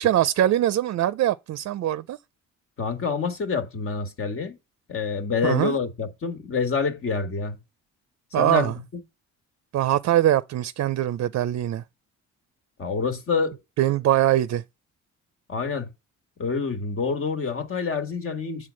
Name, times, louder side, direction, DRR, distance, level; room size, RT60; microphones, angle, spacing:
voice 1, 0.0-2.2 5.4-5.7 8.3-8.8 9.7-11.8 13.8-14.6, right 12 dB, 60° right, 0.5 m, -22 dB
voice 2, 2.8-4.6 4.9-7.6 8.4-8.7 12.8-13.6 15.5-15.9 16.4-18.7, left 5 dB, 45° left, 1.6 m, -27 dB
7.7 x 3.7 x 6.3 m
cardioid pair, 90°, 30 cm